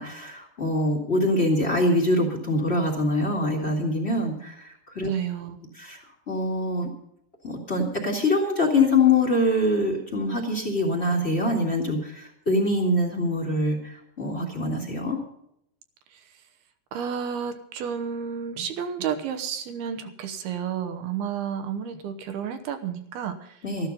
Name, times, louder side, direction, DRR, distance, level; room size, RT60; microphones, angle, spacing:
voice 1, 0.0-5.1 5.7-6.0 6.3-6.9 7.4-15.2 23.6-23.9, left 2 dB, 25° left, 2 dB, 1.5 m, -24 dB
voice 2, 5.0-5.6 16.9-23.6, right 8 dB, 75° right, 7 dB, 2.9 m, -31 dB
13.5 x 12.5 x 5.4 m, 0.75 s
omnidirectional pair, 4.7 m